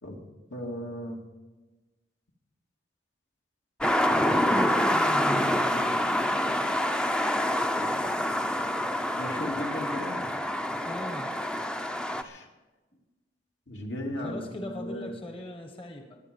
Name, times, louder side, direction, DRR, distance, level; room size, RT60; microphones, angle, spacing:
voice 1, 0.5-1.2 9.2-10.3 12.2-12.5 13.7-15.2, left 1 dB, 75° left, 0 dB, 2.7 m, -36 dB
sound 1, 3.8-12.2, left 1 dB, 5° left, 0.6 m, -26 dB
voice 2, 4.3-6.2 8.2-8.4 10.8-11.4 14.2-16.2, equal, 30° left, 5 dB, 1.2 m, -38 dB
22.0 x 9.0 x 5.3 m, 1.2 s
head